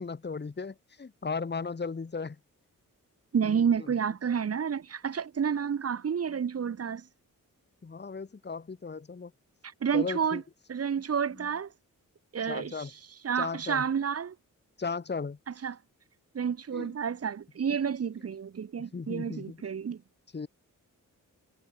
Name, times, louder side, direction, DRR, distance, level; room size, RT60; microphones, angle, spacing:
voice 1, 0.0-2.4 3.5-3.9 7.8-9.3 9.9-10.4 11.4-11.5 12.4-12.9 13.3-13.8 14.8-15.4 16.7-16.9 18.8-19.6 20.3-20.5, left 4 dB, 30° left, 1.6 m, -36 dB
voice 2, 3.3-7.1 9.8-10.4 10.7-11.7 12.3-12.7 13.2-14.3 15.6-15.8 16.3-20.0, right 7 dB, 45° right, 0.9 m, -30 dB
cardioid pair, 80°, 33 cm